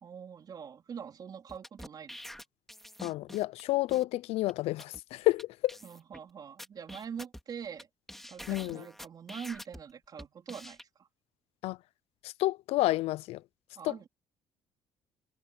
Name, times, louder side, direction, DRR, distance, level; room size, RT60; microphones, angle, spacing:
voice 1, 0.0-2.2 5.8-7.9 8.3-11.1 13.8-14.1, right 7 dB, 40° right, 3.9 m, -44 dB
sound 1, 1.5-3.6 3.9-4.0 4.5-4.6 4.8-5.0 5.4-5.5 5.7-6.2 6.6-9.8 10.2-10.8, equal, 5° left, 3.5 m, -46 dB
voice 2, 3.0-5.8 8.5-8.8 11.6-11.8 12.2-13.4 13.8-14.1, left 17 dB, 85° left, 0.5 m, -30 dB
cardioid pair, 135°, 10 cm